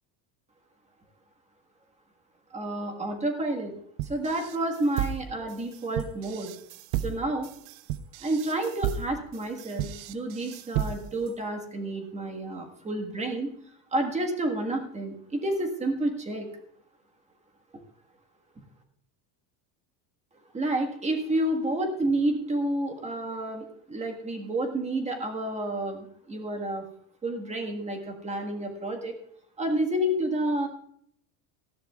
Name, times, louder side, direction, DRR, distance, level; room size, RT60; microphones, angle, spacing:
voice 1, 2.5-3.7 4.0-6.5 7.0-7.5 8.2-13.5 13.9-16.5 20.5-26.8 27.2-29.1 29.6-30.7, right 1 dB, 15° right, 3 dB, 1.6 m, -30 dB
sound 1, 4.0-11.3, right 10 dB, 90° right, 0.7 m, -33 dB
18.0 x 14.5 x 2.4 m, 0.67 s
cardioid pair, 160°, 42 cm